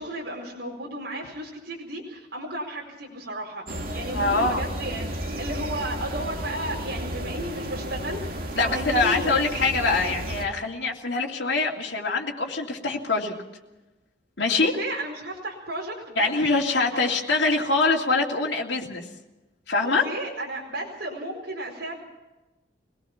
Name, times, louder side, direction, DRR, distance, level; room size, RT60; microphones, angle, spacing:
voice 1, 0.0-9.4 14.6-16.3 16.9-17.0 19.8-22.0, right 1 dB, 80° right, -3 dB, 4.6 m, -34 dB
sound 1, 3.7-10.4, right 1 dB, 50° right, 2.2 m, -32 dB
voice 2, 4.1-4.7 8.6-13.3 14.4-14.7 16.2-19.0 19.7-20.1, left 3 dB, 70° left, -1 dB, 2.7 m, -24 dB
24.0 x 19.0 x 5.9 m, 1.1 s
head